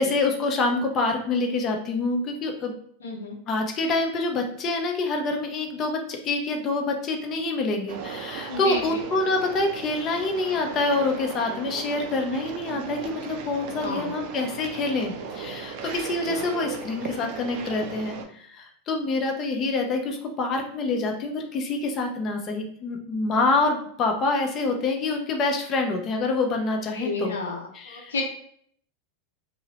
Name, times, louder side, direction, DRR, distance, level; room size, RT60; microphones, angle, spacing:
voice 1, 0.0-2.7 3.5-27.4 27.7-28.1, left 3 dB, 40° left, 3 dB, 0.6 m, -26 dB
voice 2, 3.0-3.3 8.5-9.0 13.8-14.2 16.3-16.4 26.9-28.2, left 3 dB, 85° left, 1 dB, 0.5 m, -32 dB
sound 1, 7.9-18.2, right 6 dB, 60° right, 0.4 m, -37 dB
2.6 x 2.0 x 2.8 m, 0.62 s
hypercardioid pair, 105°, 0 cm